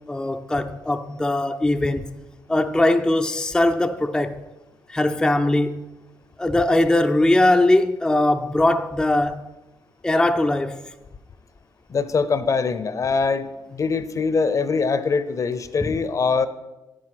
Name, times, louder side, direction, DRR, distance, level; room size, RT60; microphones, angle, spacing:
voice 1, 0.1-2.2 2.5-4.4 4.9-5.8 6.4-9.5 10.0-10.9, left 1 dB, 10° left, 0.5 m, -20 dB
voice 2, 11.9-16.5, left 5 dB, 45° left, 0.7 m, -23 dB
9.6 x 7.6 x 5.9 m
cardioid pair, 85°, 8 cm